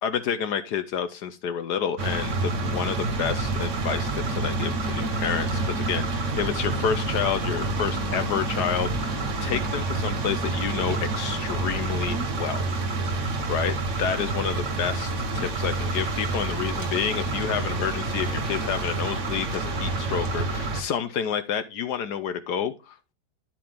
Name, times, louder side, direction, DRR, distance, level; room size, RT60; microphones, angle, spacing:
voice 1, 0.0-12.6 13.5-13.7 14.0-23.1, left 8 dB, 75° left, 10 dB, 1.4 m, -29 dB
sound 1, 2.0-20.8, right 2 dB, 50° right, 1.6 m, -28 dB
11.0 x 7.7 x 3.5 m, 0.26 s
omnidirectional pair, 1.8 m